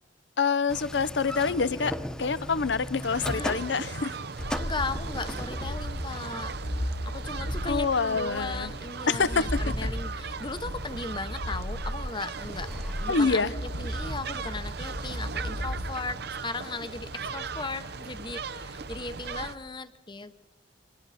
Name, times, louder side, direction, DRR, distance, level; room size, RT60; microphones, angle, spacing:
voice 1, 0.4-4.1 7.7-8.7 9.1-9.7 13.1-13.5, left 4 dB, 70° left, 17 dB, 0.7 m, -26 dB
sound 1, 0.7-7.4 12.4-13.3, equal, 5° left, 1.1 m, -38 dB
sound 2, 3.0-19.5, right 5 dB, 60° right, 0.9 m, -38 dB
voice 2, 3.2-3.6 4.6-6.5 7.1-12.7 13.0-20.5, left 3 dB, 25° left, 12 dB, 1.0 m, -37 dB
sound 3, 4.4-19.6, equal, 50° left, 1.6 m, -36 dB
28.0 x 26.0 x 4.2 m, 1.0 s
head